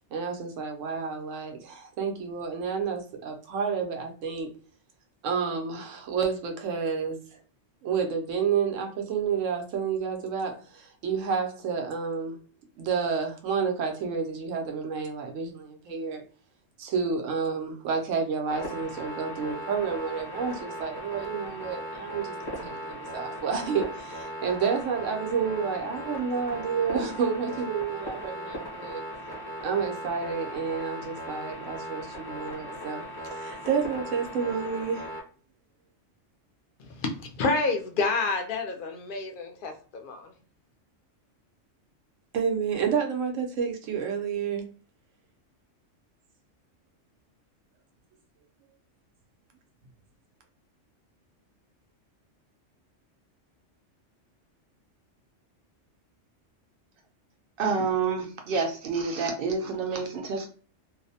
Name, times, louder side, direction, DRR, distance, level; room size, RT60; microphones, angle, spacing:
voice 1, 0.1-4.5 5.2-7.2 7.8-12.4 12.8-16.2 16.8-29.0 29.6-35.1 42.3-44.6, right 6 dB, 90° right, 3 dB, 1.0 m, -30 dB
sound 1, 18.5-35.2, equal, 25° left, 0.7 m, -38 dB
voice 2, 36.8-40.3, left 3 dB, 60° left, 4 dB, 0.5 m, -29 dB
voice 3, 57.6-60.5, right 5 dB, 60° right, 4 dB, 0.7 m, -28 dB
2.5 x 2.0 x 2.6 m, 0.38 s
omnidirectional pair, 1.3 m